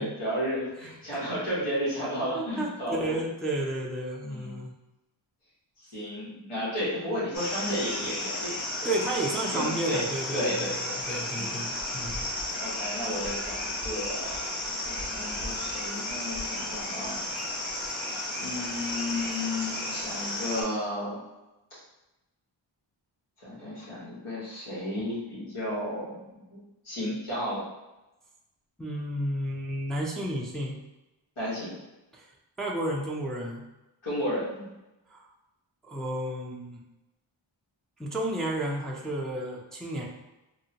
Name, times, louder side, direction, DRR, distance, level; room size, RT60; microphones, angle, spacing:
voice 1, 0.0-3.2 4.2-4.6 5.8-8.5 8.8-8.9 9.4-10.0 10.3-11.5 12.6-17.2 18.4-21.2 21.7-21.8 23.4-26.2 26.5-26.6 26.8-27.6 31.4-31.7 34.0-34.7, equal, 85° left, -9 dB, 1.4 m, -33 dB
voice 2, 0.8-1.2 2.3-4.7 8.8-10.7 11.1-12.3 15.5-15.6 28.8-30.8 32.1-32.3 32.6-33.6 35.1-35.3 35.8-36.8 38.0-40.0, right 1 dB, ahead, -3 dB, 0.4 m, -32 dB
sound 1, 7.3-20.6, left 1 dB, 70° left, 0.9 m, -33 dB
3.6 x 2.1 x 2.8 m, 1.0 s
wide cardioid pair, 40°, 49 cm